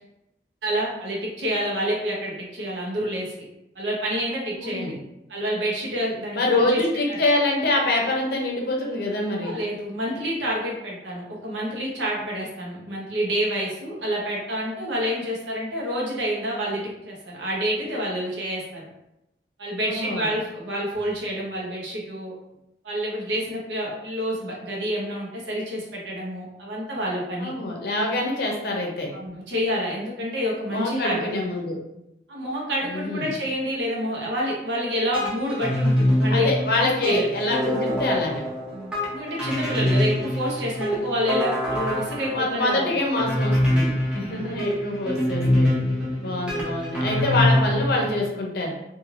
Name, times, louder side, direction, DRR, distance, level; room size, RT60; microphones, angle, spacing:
voice 1, 0.6-3.3 3.7-5.0 5.3-6.8 9.3-18.8 19.6-22.3 22.8-27.5 29.1-31.3 32.3-36.5 36.8-37.3 38.7-42.9 44.1-44.6 46.0-46.1, equal, 85° right, -3 dB, 0.9 m, -28 dB
voice 2, 4.6-5.0 6.3-9.5 19.8-20.3 27.4-29.1 30.7-31.8 32.9-33.3 36.3-38.4 42.3-45.7 46.2-48.7, left 2 dB, 55° left, 0 dB, 0.6 m, -25 dB
sound 1, 35.1-48.1, left 1 dB, 5° right, 0.7 m, -24 dB
3.1 x 2.6 x 2.5 m, 0.88 s
head